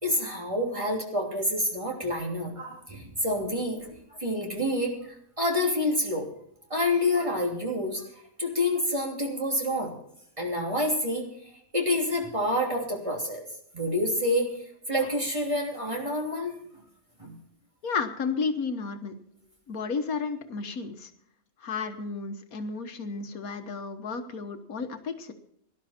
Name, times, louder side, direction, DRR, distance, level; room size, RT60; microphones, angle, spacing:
voice 1, 0.0-6.3 6.7-9.9 10.4-13.4 13.7-16.8 17.2-17.4, left 1 dB, 20° right, 0 dB, 3.1 m, -28 dB
voice 2, 17.8-19.1 19.7-21.1 21.6-25.3, left 5 dB, 75° left, 7 dB, 1.6 m, -32 dB
18.0 x 11.5 x 4.3 m, 0.71 s
omnidirectional pair, 1.5 m